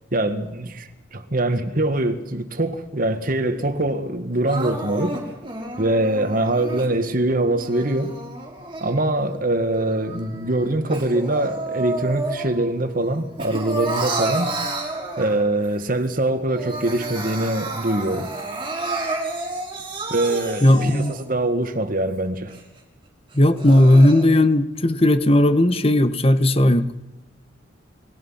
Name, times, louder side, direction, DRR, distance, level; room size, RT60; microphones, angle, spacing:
voice 1, 0.1-5.2 5.8-8.1 8.8-14.5 15.2-18.3 20.1-22.5, right 1 dB, 45° right, 1.9 m, -23 dB
Crying sobbing, 4.5-6.9 7.5-9.3 9.8-12.7 13.0-15.7 16.1-16.2 16.5-21.3 21.8-21.9 22.5-22.6 23.3-24.2, right 2 dB, 25° right, 5.3 m, -30 dB
voice 2, 20.6-21.1 23.3-26.8, left 1 dB, 30° left, 1.4 m, -16 dB
29.5 x 21.5 x 5.8 m
head